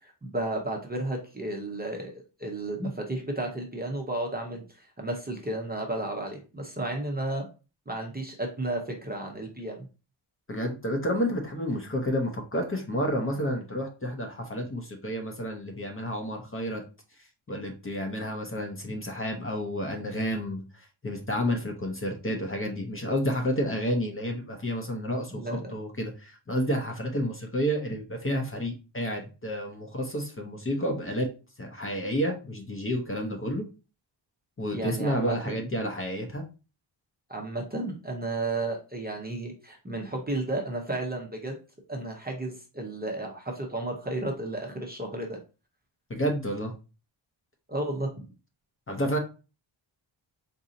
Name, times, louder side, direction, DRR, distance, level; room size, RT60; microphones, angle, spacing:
voice 1, 0.0-7.4 7.9-9.9 25.3-25.7 34.7-35.5 37.3-41.6 41.9-45.4 47.7-48.1, right 2 dB, 20° right, 1 dB, 0.6 m, -33 dB
voice 2, 10.5-16.8 17.5-20.6 21.0-31.3 31.6-33.6 34.6-36.4 46.1-46.7 48.9-49.2, equal, 30° left, 2 dB, 0.6 m, -30 dB
4.0 x 2.7 x 2.6 m, 0.32 s
wide cardioid pair, 145°, 47 cm